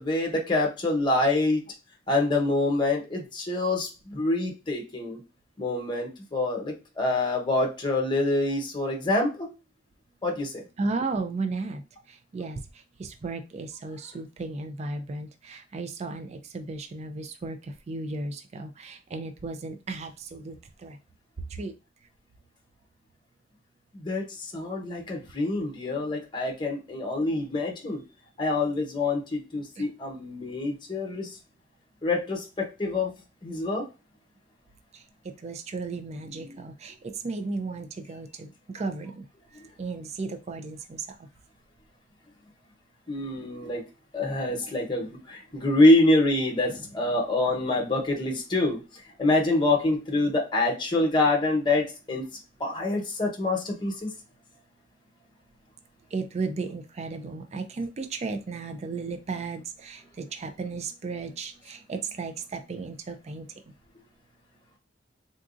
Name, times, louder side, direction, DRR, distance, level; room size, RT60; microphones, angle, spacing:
voice 1, 0.0-1.6 2.1-5.2 5.6-9.5 10.2-10.6 23.9-28.0 28.4-31.4 32.0-33.1 33.4-33.8 43.1-43.8 44.1-48.8 49.2-52.2 52.6-54.1, left 2 dB, 25° left, 1 dB, 1.0 m, -26 dB
voice 2, 10.8-11.8 12.1-12.6 13.0-21.0 21.5-21.7 29.8-29.9 34.9-35.0 35.4-37.0 37.2-39.2 39.5-41.1 56.1-63.5, right 3 dB, 35° right, 7 dB, 0.4 m, -34 dB
3.9 x 2.4 x 2.5 m, 0.29 s
head